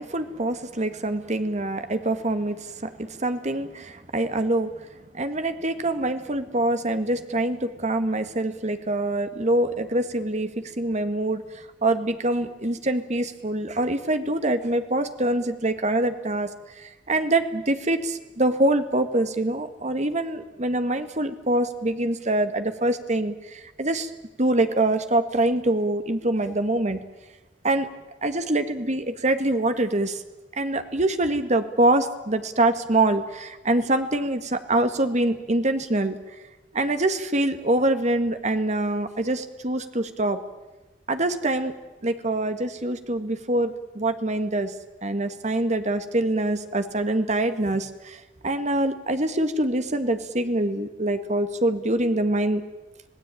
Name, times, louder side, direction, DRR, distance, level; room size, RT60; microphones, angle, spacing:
voice 1, 0.0-4.9 5.1-16.5 16.8-24.1 24.4-27.0 27.6-27.9 28.2-30.2 30.6-36.2 36.7-40.4 41.1-41.7 42.0-44.7 45.0-52.6, right 1 dB, 40° right, 9 dB, 1.8 m, -25 dB
26.5 x 18.0 x 9.1 m, 1.1 s
head